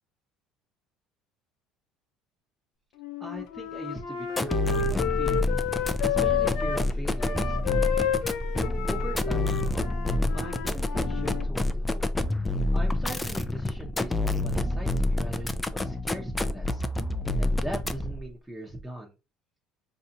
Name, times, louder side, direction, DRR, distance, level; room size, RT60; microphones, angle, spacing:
Wind instrument woodwind instrument, 3.0-6.9 7.2-11.5, left 8 dB, 70° left, 0.6 m, -30 dB
voice 1, 3.2-5.5 6.0-8.1 8.9-10.0 10.3-12.0 12.7-16.8 17.4-19.1, right 1 dB, 10° right, -1 dB, 0.9 m, -40 dB
sound 1, 4.3-18.3, left 2 dB, 15° left, 0.4 m, -28 dB
4.0 x 2.7 x 2.6 m, 0.27 s
supercardioid pair, 90°, 0 cm